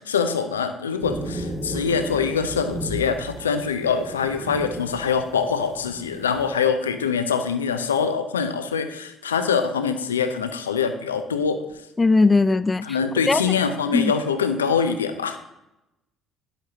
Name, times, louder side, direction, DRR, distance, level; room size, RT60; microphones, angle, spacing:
voice 1, 0.0-11.6 12.8-15.4, left 6 dB, 90° left, 0.5 m, -24 dB
sound 1, 1.0-6.6, right 1 dB, 35° right, 3.1 m, -34 dB
voice 2, 12.0-12.9 13.3-13.4 13.9-14.1, left 3 dB, 25° left, 0.3 m, -18 dB
10.0 x 8.0 x 2.8 m
hypercardioid pair, 50°, 0 cm